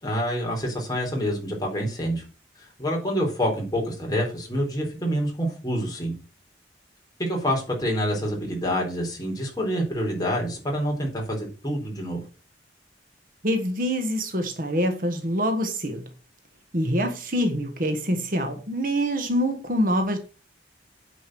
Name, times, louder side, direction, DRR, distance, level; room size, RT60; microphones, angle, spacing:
voice 1, 0.0-2.3 2.6-6.1 7.2-12.2, equal, 20° left, 4.1 m, -27 dB
voice 2, 13.4-16.0 16.7-20.2, equal, 50° right, 1.5 m, -25 dB
9.4 x 5.3 x 7.7 m
head